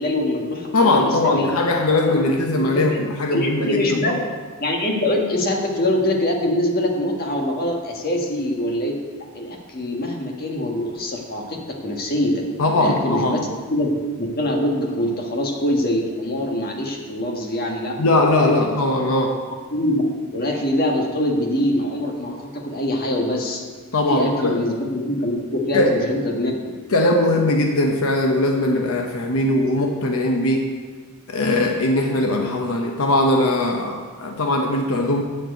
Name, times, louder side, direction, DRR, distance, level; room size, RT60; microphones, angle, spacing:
voice 1, 0.0-1.5 2.0-2.3 2.6-3.0 3.3-4.1 4.6-9.0 9.3-12.3 12.8-13.4 13.7-17.9 18.4-18.5 19.7-20.0 20.3-23.6 24.1-26.5, left 1 dB, 45° left, 0 dB, 1.5 m, -24 dB
voice 2, 0.7-4.2 12.6-13.4 18.0-19.4 23.9-24.6 25.7-26.0 26.9-30.7 31.3-35.2, left 2 dB, 75° left, 3 dB, 0.8 m, -20 dB
7.4 x 6.6 x 8.0 m, 1.5 s
head